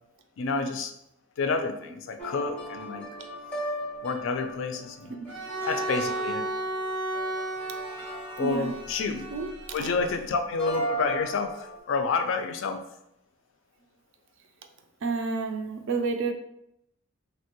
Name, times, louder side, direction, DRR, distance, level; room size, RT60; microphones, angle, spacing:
voice 1, 0.4-0.9 1.4-3.1 4.0-5.1 5.7-6.5 8.4-9.3 9.7-12.8, left 4 dB, 60° left, 7 dB, 0.3 m, -29 dB
sound 1, 2.2-10.0 10.6-11.8, right 1 dB, 5° left, 0.5 m, -37 dB
Bowed string instrument, 5.3-10.2, right 1 dB, 90° right, 0.7 m, -34 dB
voice 2, 8.4-8.7 9.3-9.5 9.8-9.9 15.0-16.3, right 4 dB, 60° right, 5 dB, 0.4 m, -29 dB
2.9 x 2.2 x 2.9 m, 0.79 s
head